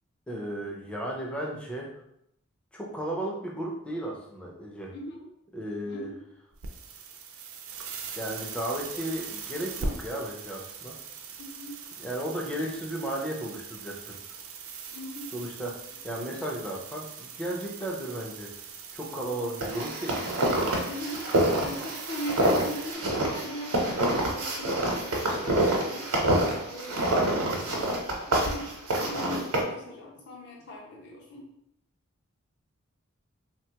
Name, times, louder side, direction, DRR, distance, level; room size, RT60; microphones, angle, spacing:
voice 1, 0.3-1.9 2.7-4.9 5.5-6.1 8.2-11.0 12.0-14.4 15.3-18.5 18.9-20.2 27.1-27.6, right 1 dB, 5° left, -2 dB, 0.4 m, -34 dB
voice 2, 4.9-5.3 5.8-6.2 11.4-11.8 14.9-15.3 19.3-19.4 20.8-21.2 21.6-26.1 26.7-27.3 28.3-28.7 29.0-31.5, equal, 50° left, -3 dB, 0.6 m, -39 dB
sound 1, 6.5-22.9, right 5 dB, 70° right, 0.4 m, -41 dB
sound 2, 19.6-29.6, right 1 dB, 90° right, 0.8 m, -27 dB
3.3 x 2.2 x 2.8 m, 0.78 s
head